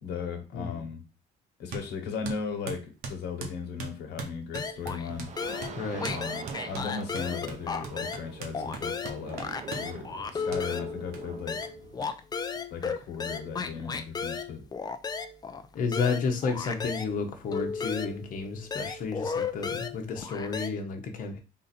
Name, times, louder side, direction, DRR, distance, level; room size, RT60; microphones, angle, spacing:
voice 1, 0.0-1.0 1.6-5.3 6.1-11.6 12.7-14.6, left 6 dB, 85° left, 4 dB, 1.2 m, -37 dB
sound 1, 1.7-1.9 2.2-5.3 5.6-5.8 6.0-6.2 6.5-9.9 10.5-10.6 11.1-11.2 11.6-11.7 12.0-12.1 12.3-13.1, right 4 dB, 70° right, 1.1 m, -40 dB
sound 2, 4.5-5.1 5.4-8.3 8.5-17.1 17.5-20.7, left 5 dB, 25° left, 0.5 m, -34 dB
sound 3, 5.1-12.0, right 6 dB, 45° right, 0.7 m, -44 dB
voice 2, 5.7-6.2 15.7-21.4, left 4 dB, 55° left, 3 dB, 0.9 m, -31 dB
3.8 x 2.6 x 4.2 m, 0.30 s
cardioid pair, 110°, 17 cm